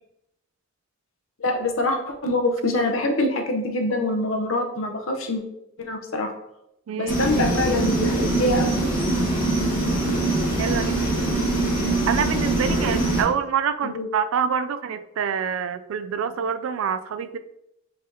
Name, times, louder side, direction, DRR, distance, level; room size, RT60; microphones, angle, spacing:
voice 1, 1.4-5.4 5.8-6.3 7.0-8.7 13.8-14.1, left 2 dB, 70° left, 4 dB, 0.7 m, -25 dB
voice 2, 6.9-7.2 10.6-11.0 12.1-17.4, right 7 dB, 75° right, 11 dB, 0.3 m, -26 dB
sound 1, 7.1-13.2, right 2 dB, 40° left, 1.6 m, -23 dB
5.4 x 3.4 x 2.7 m, 0.83 s
head